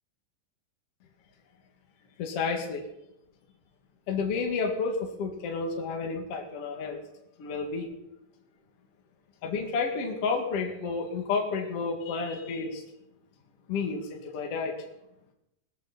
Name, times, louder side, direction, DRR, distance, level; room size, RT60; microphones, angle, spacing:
voice 1, 2.2-2.9 4.1-7.0 7.4-7.9 9.4-12.8 13.7-14.8, left 4 dB, 45° left, 2 dB, 2.5 m, -31 dB
20.0 x 13.5 x 4.2 m, 0.84 s
omnidirectional pair, 4.4 m